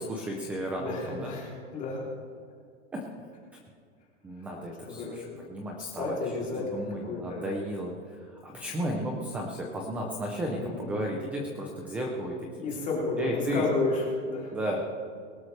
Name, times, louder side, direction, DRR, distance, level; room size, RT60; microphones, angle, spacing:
voice 1, 0.0-1.3 2.9-3.0 4.2-6.2 6.6-12.5 13.2-13.7 14.5-14.8, equal, 5° right, 1 dB, 0.4 m, -34 dB
voice 2, 0.8-2.0 4.4-4.5 4.9-5.4 5.8-7.5 10.5-11.0 12.6-14.5, left 3 dB, 20° left, -4 dB, 3.1 m, -32 dB
22.0 x 12.5 x 3.2 m, 2.2 s
supercardioid pair, 165°, 38 cm